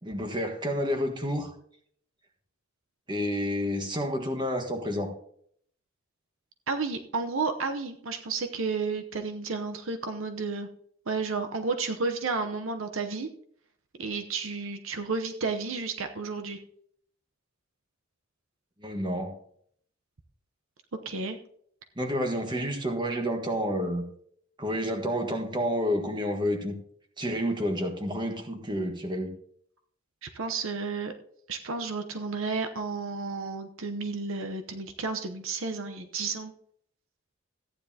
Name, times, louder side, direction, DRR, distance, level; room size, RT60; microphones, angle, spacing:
voice 1, 0.0-1.5 3.1-5.1 18.8-19.3 22.0-24.0 24.6-26.7 27.2-29.3, equal, 20° right, 4 dB, 1.5 m, -29 dB
voice 2, 6.7-10.7 11.1-13.3 14.0-16.6 21.0-21.4 30.2-31.1 31.5-36.5, right 4 dB, 70° right, 6 dB, 0.9 m, -32 dB
14.5 x 9.8 x 2.8 m, 0.64 s
head